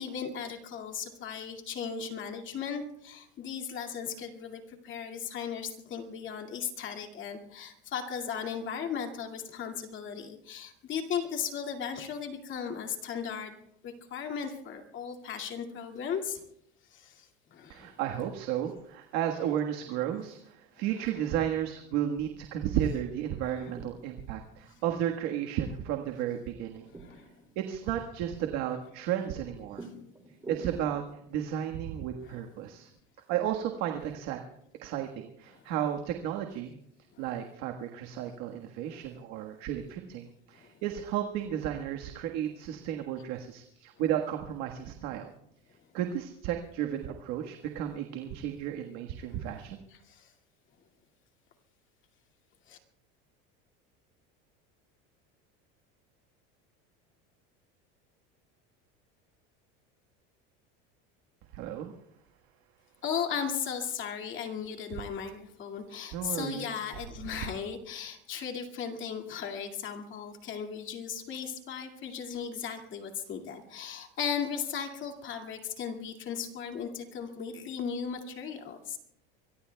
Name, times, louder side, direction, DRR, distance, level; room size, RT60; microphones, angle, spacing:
voice 1, 0.0-13.6 13.8-16.4 16.9-18.0 19.5-19.6 20.8-21.2 22.9-23.0 23.4-23.7 27.0-27.3 30.6-30.8 32.2-32.4 33.9-34.0 35.5-35.8 37.1-37.4 38.9-39.0 40.5-40.7 42.3-42.4 44.0-44.2 49.3-50.3 52.7-52.8 63.0-79.0, left 7 dB, 40° left, 3 dB, 2.3 m, -37 dB
voice 2, 17.7-26.9 27.5-29.9 30.5-31.0 31.3-32.9 33.3-34.4 34.8-36.8 37.2-45.3 45.9-49.8 61.5-61.9 66.1-66.7, right 10 dB, 65° right, 3 dB, 1.6 m, -33 dB
sound 1, 23.3-33.0, right 2 dB, 10° right, 2.6 m, -52 dB
25.0 x 22.5 x 2.3 m, 0.76 s
cardioid pair, 135°, 29 cm